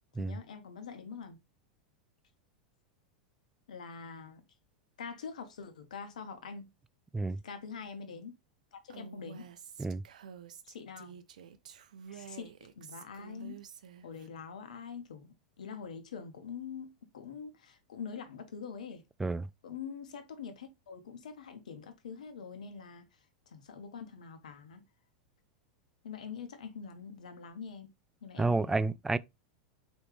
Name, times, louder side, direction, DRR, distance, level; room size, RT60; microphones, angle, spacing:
voice 1, 0.2-1.4 3.7-4.4 5.0-6.7 7.4-8.3 8.7-9.5 10.6-11.2 12.1-13.6 14.0-19.0 19.6-23.1 23.5-24.8 26.0-27.9 28.2-28.9, left 6 dB, 80° left, 1.1 m, -44 dB
Female speech woman speaking, 8.9-14.3, right 7 dB, 75° right, 0.6 m, -49 dB
voice 2, 28.4-29.2, right 3 dB, 10° right, 0.3 m, -30 dB
4.9 x 3.1 x 3.2 m
hypercardioid pair, 105°, 4 cm